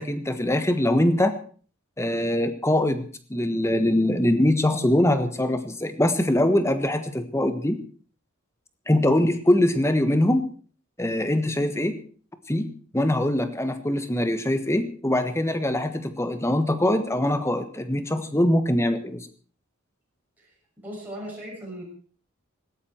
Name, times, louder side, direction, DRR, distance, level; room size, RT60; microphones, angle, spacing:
voice 1, 0.0-1.4 2.0-7.8 8.9-10.4 11.0-12.0 12.5-19.3, left 1 dB, 10° left, 9 dB, 1.5 m, -23 dB
voice 2, 20.4-21.8, right 1 dB, 10° right, -5 dB, 7.1 m, -38 dB
18.5 x 15.5 x 4.5 m, 0.43 s
head